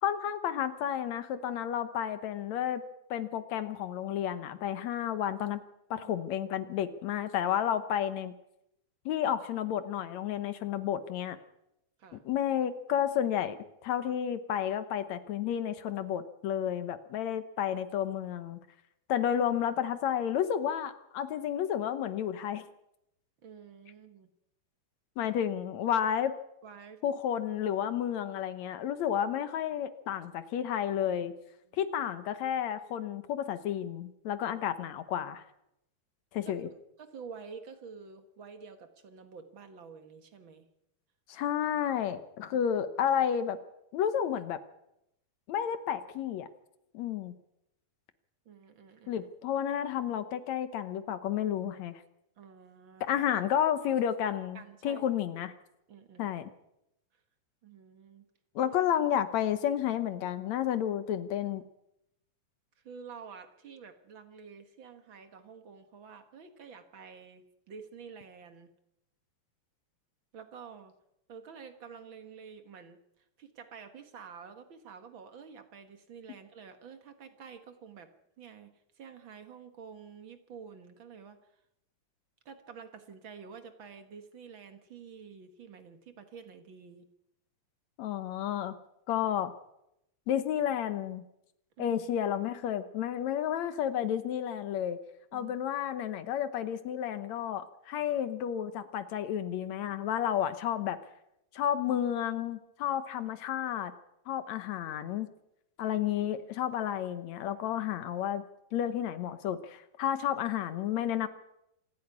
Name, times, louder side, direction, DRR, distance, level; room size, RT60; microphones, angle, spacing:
voice 1, 0.0-2.8 3.1-5.6 5.9-8.3 9.1-11.4 12.1-13.6 13.8-18.6 19.1-22.6 25.2-26.3 27.0-31.3 31.7-35.4 36.3-36.7 41.3-43.6 43.9-44.6 45.5-46.5 46.9-47.3 49.1-52.0 53.0-55.5 56.2-56.5 58.6-61.6 88.0-88.8 89.1-89.5 90.3-91.2 91.8-95.0 95.3-101.0 101.5-103.9 104.3-105.3 105.8-108.4 108.7-111.3, left 9 dB, 65° left, 11 dB, 1.8 m, -31 dB
voice 2, 23.4-24.3 26.6-27.0 31.7-31.8 36.4-40.7 42.5-42.6 48.4-49.3 52.4-53.2 54.5-55.0 55.9-56.3 57.6-58.2 58.6-58.8 62.8-68.7 70.3-70.9 71.3-78.1 78.4-81.4 82.4-87.1 91.8-92.0 95.3-95.5 103.3-103.4, right 6 dB, 50° right, 8 dB, 1.5 m, -49 dB
26.5 x 10.5 x 9.7 m, 0.83 s
omnidirectional pair, 4.3 m